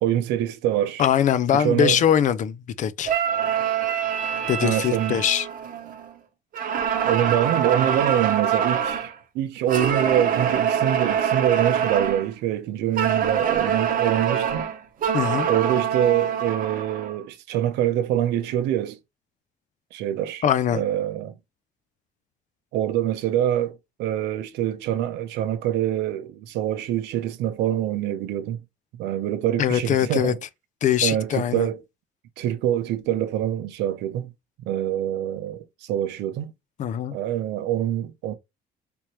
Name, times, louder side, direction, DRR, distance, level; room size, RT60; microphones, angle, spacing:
voice 1, 0.0-1.0 1.5-2.0 4.6-5.2 7.0-14.7 15.5-19.0 19.9-20.4 20.7-21.3 22.7-28.6 29.0-30.4 31.0-31.8 32.4-34.3 34.7-36.5 37.1-38.3, right 11 dB, 85° right, 0.6 m, -25 dB
voice 2, 1.0-3.1 4.5-5.5 15.1-15.5 20.4-20.8 29.6-30.3 30.8-31.7 36.8-37.1, left 10 dB, 45° left, 0.4 m, -22 dB
sound 1, 3.0-6.1 6.5-9.1 9.7-12.3 13.0-17.2, right 8 dB, 55° right, 0.8 m, -25 dB
3.5 x 2.9 x 3.0 m
cardioid pair, 110°, 17 cm